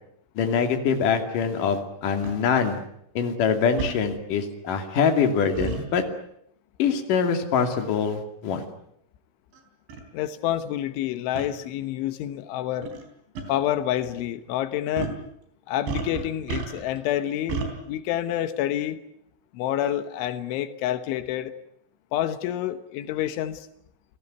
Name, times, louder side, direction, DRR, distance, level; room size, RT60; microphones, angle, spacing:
voice 1, 0.4-2.8 3.2-6.0 6.8-8.6, left 6 dB, 50° left, 5 dB, 3.8 m, -24 dB
sound 1, 2.2-2.4 3.8-4.0 5.6-5.8 7.6-7.8 8.6-8.7 9.5-9.6 9.9-10.0 11.4-11.5 12.8-13.0 13.4-13.5 15.0-15.2 15.9-17.0 17.5-17.7, right 5 dB, 75° right, 6.1 m, -31 dB
voice 2, 10.1-12.9 13.5-15.1 15.7-19.0 19.5-21.5 22.1-23.7, left 12 dB, 90° left, 10 dB, 3.7 m, -28 dB
30.0 x 18.0 x 9.4 m, 0.74 s
omnidirectional pair, 5.3 m